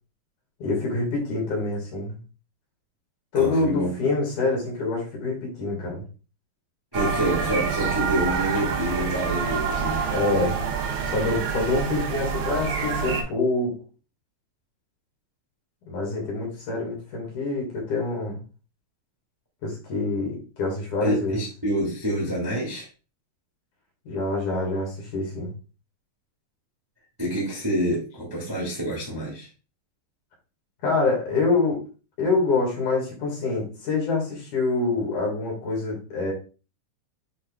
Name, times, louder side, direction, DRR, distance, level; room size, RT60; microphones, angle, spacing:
voice 1, 0.6-2.2 3.3-6.0 10.1-10.6 11.0-13.8 15.9-18.4 19.6-21.4 24.0-25.5 30.8-31.8 32.2-36.3, left 3 dB, 50° left, -2 dB, 3.1 m, -26 dB
voice 2, 3.3-3.9 6.9-10.0 21.0-22.9 27.2-29.5, equal, 10° right, -3 dB, 1.0 m, -27 dB
sound 1, 6.9-13.2, right 6 dB, 80° right, 3.7 m, -27 dB
8.4 x 5.2 x 2.4 m, 0.34 s
omnidirectional pair, 5.1 m